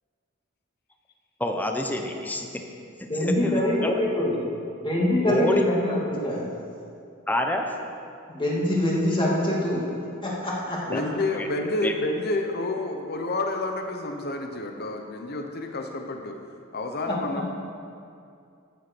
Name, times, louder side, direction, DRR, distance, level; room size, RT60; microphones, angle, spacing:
voice 1, 1.4-2.6 3.2-3.9 5.2-5.6 7.3-7.7 10.9-11.0 11.3-11.5 11.8-11.9, left 1 dB, 10° left, 3 dB, 1.0 m, -27 dB
voice 2, 3.1-4.3 4.8-6.4 8.3-9.8 10.2-11.0 17.1-17.2, left 1 dB, 25° left, -4 dB, 2.5 m, -24 dB
voice 3, 10.9-16.4 16.7-17.5, left 2 dB, 50° left, 4 dB, 1.0 m, -29 dB
14.0 x 8.0 x 6.2 m, 2.5 s
head